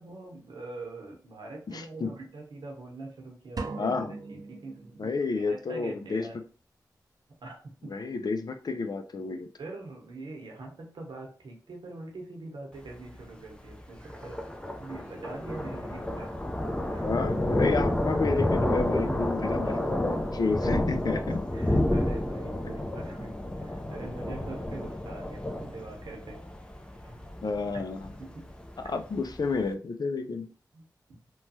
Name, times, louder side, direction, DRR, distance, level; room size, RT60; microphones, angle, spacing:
voice 1, 0.0-3.9 4.3-5.1 5.4-6.4 7.4-7.9 9.6-16.4 16.9-17.2 19.0-19.2 19.6-20.0 20.6-20.7 21.1-26.4 27.0-27.3 28.2-28.5 30.7-30.9, right 2 dB, 85° right, 1 dB, 0.8 m, -43 dB
voice 2, 1.7-2.1 3.8-4.2 5.0-6.3 7.8-9.5 17.0-21.4 22.6-22.8 27.4-28.1 28.8-30.5, left 4 dB, 60° left, 8 dB, 0.4 m, -31 dB
sound 1, 3.6-5.4, right 3 dB, 60° right, 0.5 m, -39 dB
Thunder, 12.7-29.7, left 1 dB, 10° left, 0.5 m, -30 dB
sound 2, 13.9-15.8 16.6-17.0 17.5-22.2 22.8-22.9 24.5-24.7, right 1 dB, 20° right, 0.9 m, -44 dB
3.0 x 2.3 x 2.7 m, 0.39 s
cardioid pair, 40°, 7 cm